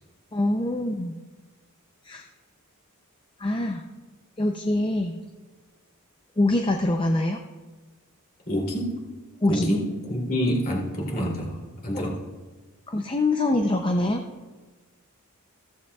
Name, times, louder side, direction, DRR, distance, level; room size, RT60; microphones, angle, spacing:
voice 1, 0.3-1.2 2.0-2.2 3.4-3.8 4.4-5.2 6.4-7.4 9.4-9.7 11.9-12.1 12.9-14.3, left 2 dB, 20° left, 4 dB, 0.5 m, -24 dB
voice 2, 8.5-9.0 9.5-12.2, equal, 40° left, -3 dB, 2.9 m, -27 dB
15.5 x 14.0 x 2.4 m, 1.3 s
head